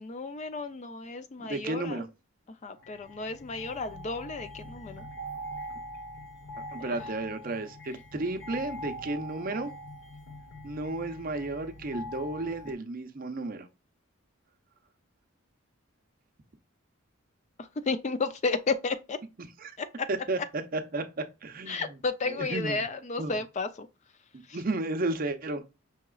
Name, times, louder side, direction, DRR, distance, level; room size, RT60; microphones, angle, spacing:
voice 1, 0.0-2.0 2.6-5.0 6.8-7.0 17.6-19.2 19.8-20.1 21.7-23.9, left 3 dB, 30° left, 0.3 m, -32 dB
voice 2, 1.4-2.1 6.7-9.7 10.6-13.7 19.4-19.8 20.1-22.0 22.3-22.8 23.2-23.4 24.3-25.6, right 2 dB, 40° right, 0.6 m, -33 dB
sound 1, 2.8-12.7, equal, 55° left, 1.1 m, -43 dB
5.6 x 2.9 x 2.3 m
head